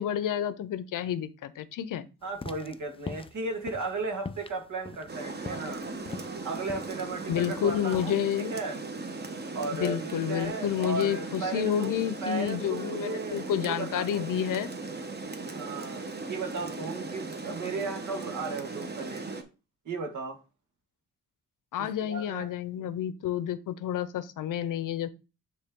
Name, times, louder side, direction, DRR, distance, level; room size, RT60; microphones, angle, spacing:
voice 1, 0.0-2.1 7.3-8.5 9.7-14.7 21.7-25.1, left 9 dB, 70° left, 0.7 m, -30 dB
voice 2, 2.2-5.8 6.4-8.1 8.5-8.8 9.5-14.2 15.5-19.3 19.9-20.4 21.8-22.5 22.8-22.9, right 3 dB, 65° right, 1.8 m, -35 dB
sound 1, 2.3-8.2, left 4 dB, 20° left, 0.4 m, -42 dB
Rain, 5.1-19.4, right 3 dB, 30° right, 1.2 m, -38 dB
9.2 x 3.3 x 3.7 m
cardioid pair, 90°, 33 cm